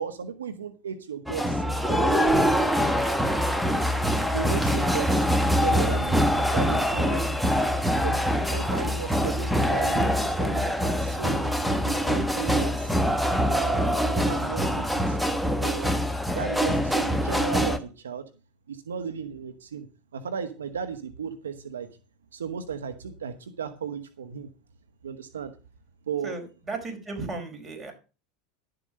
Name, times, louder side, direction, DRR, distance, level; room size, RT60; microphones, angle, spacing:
voice 1, 0.0-2.4 4.3-5.1 5.6-6.2 6.5-7.2 8.0-11.4 11.8-13.0 13.5-15.2 15.6-16.0 16.3-18.2 18.7-19.9 20.1-21.9 22.3-24.5 25.0-25.5 26.1-26.4, right 7 dB, 85° right, 10 dB, 1.0 m, -35 dB
sound 1, 1.3-17.8, equal, ahead, 1.3 m, -24 dB
voice 2, 4.5-5.1 26.2-27.9, right 3 dB, 25° right, 4 dB, 5.1 m, -36 dB
11.5 x 7.8 x 5.3 m, 0.33 s
hypercardioid pair, 90°, 0 cm